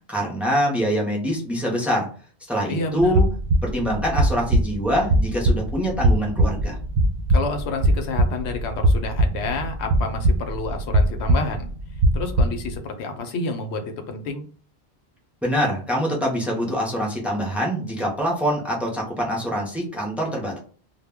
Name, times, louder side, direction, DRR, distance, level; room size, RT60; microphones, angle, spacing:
voice 1, 0.1-2.1 2.5-3.3 3.6-6.8 15.4-20.6, equal, ahead, -2 dB, 0.3 m, -24 dB
voice 2, 2.7-3.2 7.3-11.7 12.1-14.4, left 3 dB, 80° left, 6 dB, 0.8 m, -29 dB
sound 1, 3.0-12.8, right 1 dB, 60° right, 0.6 m, -22 dB
2.1 x 2.1 x 3.4 m, 0.41 s
omnidirectional pair, 1.1 m